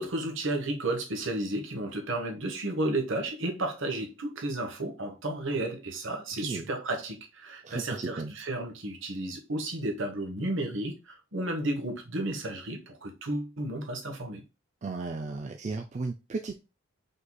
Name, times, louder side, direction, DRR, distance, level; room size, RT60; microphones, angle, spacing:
voice 1, 0.0-14.4, right 1 dB, 60° right, 1.2 m, -32 dB
voice 2, 7.6-8.3 14.8-16.6, right 3 dB, 35° right, 0.4 m, -35 dB
5.3 x 4.1 x 2.3 m
head